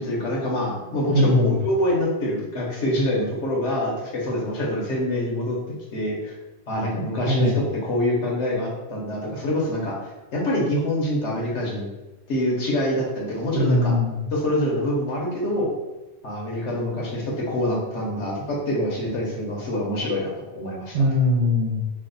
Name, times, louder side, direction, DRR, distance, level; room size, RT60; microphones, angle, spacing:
voice 1, 0.0-5.6 5.9-6.4 6.7-9.9 10.3-11.9 12.3-13.9 14.3-15.7 16.2-21.0, left 1 dB, 90° left, -3 dB, 1.2 m, -25 dB
voice 2, 1.1-1.6 7.3-7.6 13.5-14.3 20.9-21.9, left 1 dB, 85° right, 0 dB, 1.1 m, -21 dB
3.2 x 2.1 x 3.8 m, 1.1 s
omnidirectional pair, 1.2 m